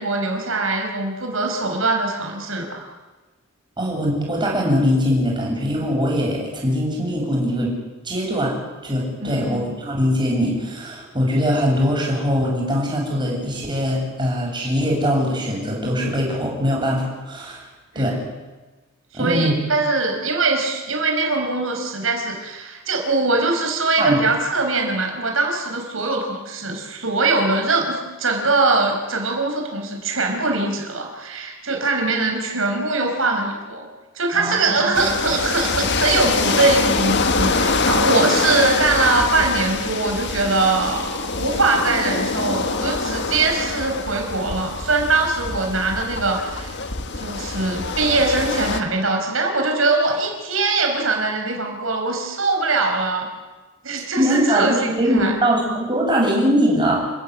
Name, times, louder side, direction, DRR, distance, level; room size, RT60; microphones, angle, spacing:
voice 1, 0.0-2.9 9.2-9.6 17.9-18.1 19.1-33.9 34.2-46.8 47.2-53.3 53.8-55.3, right 3 dB, 90° right, 2 dB, 5.3 m, -22 dB
voice 2, 3.8-7.7 8.0-8.6 8.8-17.6 17.9-18.2 19.1-19.5 24.0-24.2 34.3-35.0 54.2-57.0, equal, 25° right, -2 dB, 7.8 m, -21 dB
sound 1, 34.9-48.8, left 4 dB, 60° left, 1.7 m, -24 dB
29.5 x 14.0 x 9.8 m, 1.2 s
head